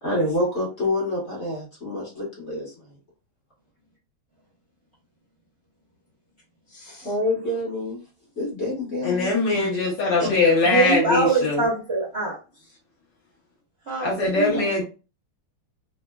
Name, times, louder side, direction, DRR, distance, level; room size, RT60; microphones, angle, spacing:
voice 1, 0.0-2.7 7.0-8.0 8.4-9.3 10.2-10.4 14.3-14.6, left 1 dB, 40° left, -4 dB, 1.1 m, -27 dB
voice 2, 6.7-7.1 10.6-12.4 13.9-14.1 14.6-14.7, right 3 dB, 45° right, -6 dB, 0.8 m, -24 dB
voice 3, 9.0-11.6 14.0-14.8, left 3 dB, 60° left, -3 dB, 1.5 m, -21 dB
3.7 x 2.0 x 2.2 m, 0.32 s
omnidirectional pair, 2.4 m